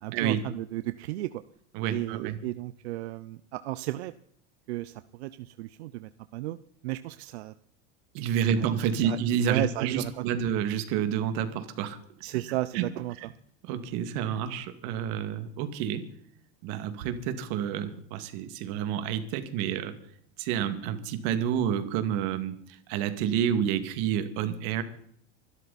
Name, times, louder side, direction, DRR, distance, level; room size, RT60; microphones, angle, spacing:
voice 1, 0.0-1.3 1.9-4.1 4.7-6.6 6.8-7.5 8.6-8.7 9.0-9.2 9.4-10.2 12.2-13.2, right 17 dB, 85° right, 13 dB, 0.8 m, -33 dB
voice 2, 1.7-2.4 8.1-12.0 12.3-12.9 13.2-13.3 13.6-16.1 16.6-19.9 20.4-22.5 22.9-24.8, right 8 dB, 60° right, 8 dB, 2.4 m, -29 dB
25.0 x 12.5 x 4.3 m, 0.68 s
supercardioid pair, 145°, 32 cm